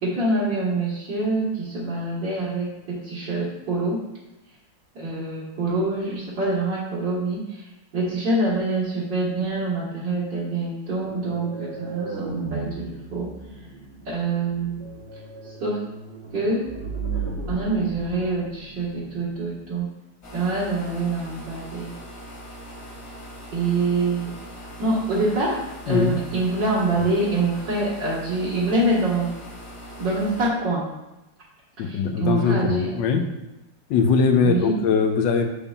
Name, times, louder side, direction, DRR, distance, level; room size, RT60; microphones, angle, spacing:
voice 1, 0.0-4.1 4.9-7.7 7.9-13.3 14.1-14.9 15.4-15.8 16.3-16.7 17.5-19.9 20.3-21.9 23.5-24.3 24.6-25.6 25.9-29.3 30.0-30.9 31.8-32.9 34.4-34.8, right 2 dB, 65° right, -9 dB, 2.2 m, -25 dB
sound 1, 11.0-19.8, right 4 dB, 40° right, 0.7 m, -36 dB
sound 2, 20.2-30.5, equal, 45° left, 1.6 m, -41 dB
voice 2, 31.8-33.2 33.9-35.5, left 5 dB, 75° left, 5 dB, 1.3 m, -21 dB
7.0 x 6.8 x 2.4 m, 0.96 s
omnidirectional pair, 2.1 m